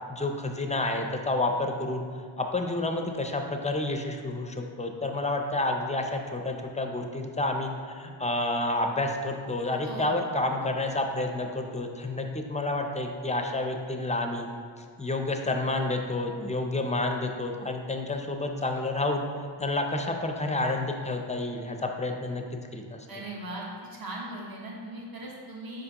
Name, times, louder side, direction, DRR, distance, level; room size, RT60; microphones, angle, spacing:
voice 1, 0.1-2.0 2.4-14.5 14.8-19.2 19.6-22.4 22.7-23.0, left 2 dB, 15° left, 3 dB, 0.5 m, -29 dB
voice 2, 9.8-10.3 23.1-23.6 23.9-25.8, right 1 dB, 45° right, -3 dB, 1.1 m, -39 dB
6.7 x 5.0 x 2.9 m, 2.1 s
wide cardioid pair, 85°, 48 cm